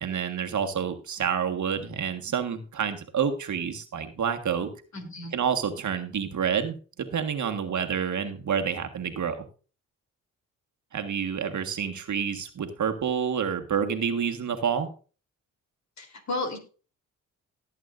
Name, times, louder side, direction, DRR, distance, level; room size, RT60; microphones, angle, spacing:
voice 1, 0.0-4.7 5.3-9.4 10.9-14.9, right 7 dB, 55° right, 6 dB, 1.6 m, -28 dB
voice 2, 4.9-5.4 16.0-16.6, left 2 dB, 50° left, 5 dB, 3.5 m, -33 dB
18.0 x 8.2 x 2.6 m, 0.37 s
supercardioid pair, 60°, 35 cm